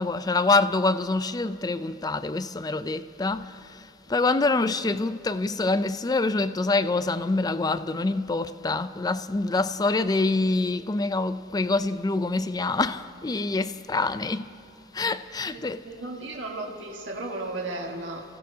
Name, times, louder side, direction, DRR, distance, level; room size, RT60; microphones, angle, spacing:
voice 1, 0.0-3.5 4.1-14.5 14.9-15.8, left 3 dB, 20° left, 0.4 m, -25 dB
voice 2, 15.5-18.2, right 2 dB, 90° right, 1.6 m, -35 dB
30.0 x 16.0 x 2.8 m
head